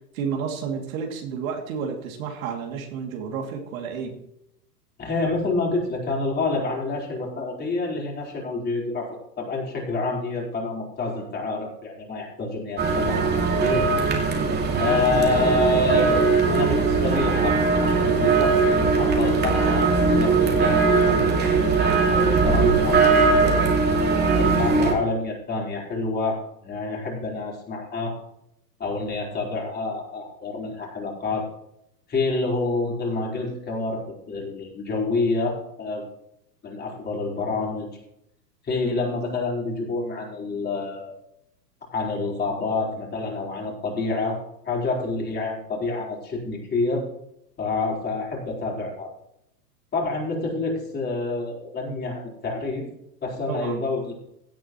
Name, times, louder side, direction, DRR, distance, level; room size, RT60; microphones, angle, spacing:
voice 1, 0.1-4.1 53.5-53.8, right 6 dB, 55° right, 2 dB, 2.7 m, -31 dB
voice 2, 5.0-13.8 14.8-21.8 22.1-23.7 24.3-28.1 28.8-31.5 32.1-36.1 36.6-37.9 38.6-41.1 41.9-44.4 44.6-47.0 47.6-49.1 49.9-52.8 53.2-54.1, left 3 dB, 20° left, -2 dB, 4.2 m, -28 dB
sound 1, 12.8-24.9, right 4 dB, 20° right, 2.6 m, -20 dB
16.5 x 8.6 x 3.1 m, 0.77 s
hypercardioid pair, 115°, 48 cm